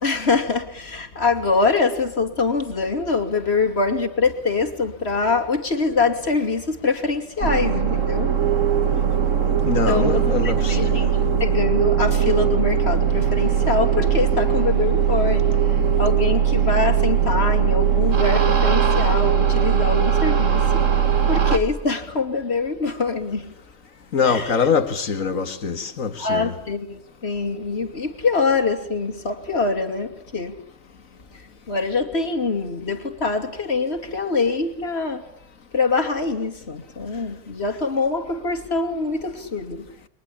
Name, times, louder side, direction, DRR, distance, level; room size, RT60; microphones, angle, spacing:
voice 1, 0.0-8.3 9.7-15.5 16.0-20.9 21.3-23.5 24.2-24.7 26.2-30.6 31.7-35.2 35.7-39.9, left 4 dB, 45° left, 2.9 m, -24 dB
sound 1, 7.4-21.6, right 8 dB, 60° right, 2.3 m, -20 dB
voice 2, 9.7-11.1 24.1-26.5, left 5 dB, 65° left, 2.0 m, -23 dB
30.0 x 23.0 x 8.6 m
omnidirectional pair, 1.5 m